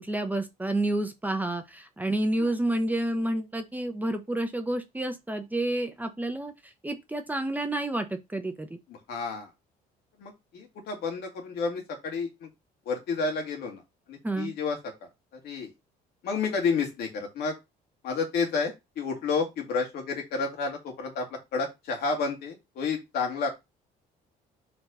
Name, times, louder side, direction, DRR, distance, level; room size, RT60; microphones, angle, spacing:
voice 1, 0.0-8.8 14.2-14.5, right 1 dB, 10° right, 0.9 m, -29 dB
voice 2, 9.1-9.5 10.2-12.5 12.9-13.8 14.1-14.8 15.4-15.7 16.2-17.5 18.0-21.3 21.5-23.5, left 4 dB, 70° left, 2.6 m, -30 dB
4.4 x 4.0 x 5.4 m
cardioid pair, 110°, 17 cm